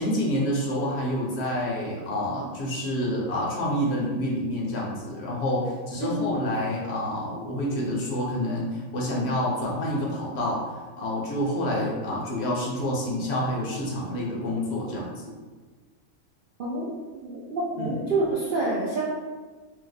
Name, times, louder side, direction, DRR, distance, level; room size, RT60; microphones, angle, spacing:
voice 1, 0.0-10.6 11.0-15.3 17.8-18.0, left 1 dB, 60° left, -3 dB, 0.9 m, -28 dB
voice 2, 16.6-16.9 17.2-19.1, right 2 dB, 60° right, -6 dB, 0.5 m, -27 dB
2.7 x 2.1 x 3.9 m, 1.4 s
omnidirectional pair, 1.4 m